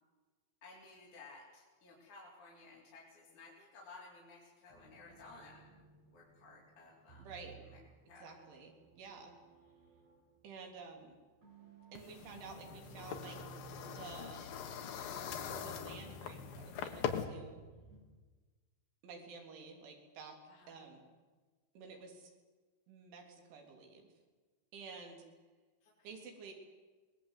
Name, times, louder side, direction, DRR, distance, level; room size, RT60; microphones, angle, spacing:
voice 1, 0.6-5.6 6.1-7.3 7.6-7.8 8.1-8.4 20.5-20.8 25.8-26.1, left 3 dB, 45° left, -5 dB, 5.2 m, -56 dB
sound 1, 4.7-18.0, right 3 dB, 35° right, 7.4 m, -58 dB
voice 2, 7.2-7.6 8.2-9.3 10.4-11.2 11.9-13.4 14.0-14.5 15.5-17.6 19.0-20.4 20.7-21.0 21.8-22.3 22.9-24.1 24.7-25.2 26.0-26.5, right 5 dB, 85° right, 2 dB, 5.7 m, -51 dB
sound 2, 12.0-17.2, left 8 dB, 60° left, 2.9 m, -42 dB
26.0 x 20.0 x 8.3 m, 1.3 s
omnidirectional pair, 5.3 m